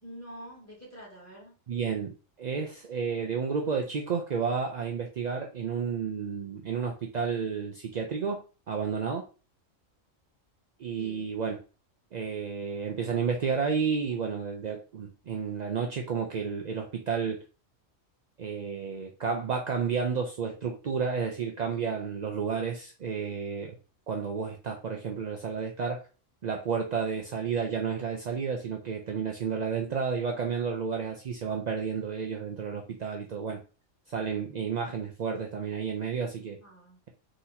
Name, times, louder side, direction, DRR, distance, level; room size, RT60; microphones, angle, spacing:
voice 1, 0.0-1.5 11.0-11.3 36.6-37.0, equal, 10° left, -4 dB, 1.9 m, -46 dB
voice 2, 1.7-8.4 8.7-9.2 10.8-11.6 12.1-17.4 18.4-23.8 24.1-26.0 26.4-33.6 34.1-36.6, right 6 dB, 65° right, 2 dB, 0.4 m, -31 dB
3.8 x 2.9 x 4.1 m, 0.34 s
omnidirectional pair, 1.4 m